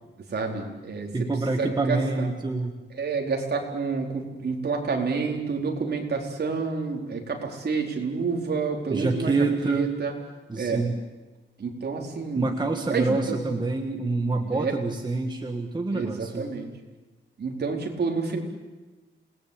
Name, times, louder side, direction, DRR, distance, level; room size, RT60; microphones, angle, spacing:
voice 1, 0.3-2.3 2.9-10.1 10.6-10.8 11.6-12.6 12.8-13.4 14.5-14.8 15.9-16.7 17.4-18.4, right 4 dB, 50° right, 1 dB, 4.3 m, -29 dB
voice 2, 1.1-2.7 8.9-9.9 10.5-11.0 12.3-16.5, right 3 dB, 20° right, 3 dB, 1.7 m, -27 dB
28.0 x 19.5 x 8.7 m, 1.2 s
wide cardioid pair, 150°, 21 cm